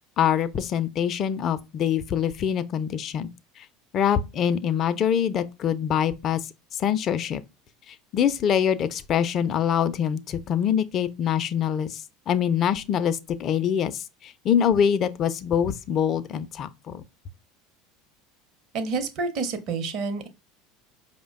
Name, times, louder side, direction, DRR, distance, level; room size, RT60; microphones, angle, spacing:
voice 1, 0.2-3.3 3.9-6.4 6.7-7.4 7.9-17.0, left 8 dB, 45° left, 0.4 m, -24 dB
voice 2, 18.7-20.3, right 4 dB, 55° right, 0.8 m, -28 dB
4.9 x 2.1 x 3.5 m
hypercardioid pair, 80°, 0 cm